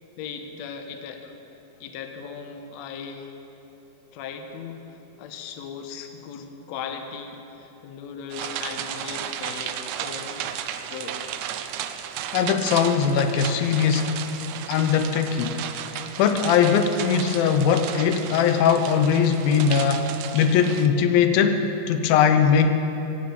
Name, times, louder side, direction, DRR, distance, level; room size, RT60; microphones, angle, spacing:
voice 1, 0.2-1.3 1.8-3.3 4.1-10.4 10.9-11.2, left 6 dB, 65° left, 5 dB, 1.9 m, -38 dB
sound 1, 8.3-20.9, right 10 dB, 80° right, 1.6 m, -34 dB
voice 2, 12.3-14.2 14.7-15.6 16.2-20.1 20.3-22.7, left 7 dB, 85° left, 8 dB, 2.7 m, -20 dB
17.0 x 9.8 x 8.3 m, 3.0 s
omnidirectional pair, 4.1 m